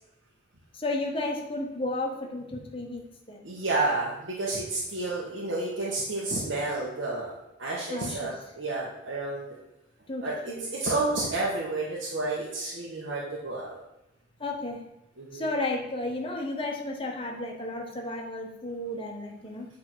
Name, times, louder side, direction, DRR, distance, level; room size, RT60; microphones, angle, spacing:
voice 1, 0.8-3.0 3.3-3.4 7.9-8.2 10.1-10.7 14.4-14.8 15.3-19.7, left 2 dB, 25° left, 1 dB, 1.2 m, -33 dB
voice 2, 3.4-7.3 7.6-9.5 10.2-13.8 15.2-15.5, right 2 dB, 70° right, -5 dB, 1.4 m, -30 dB
8.7 x 3.7 x 6.1 m, 0.90 s
head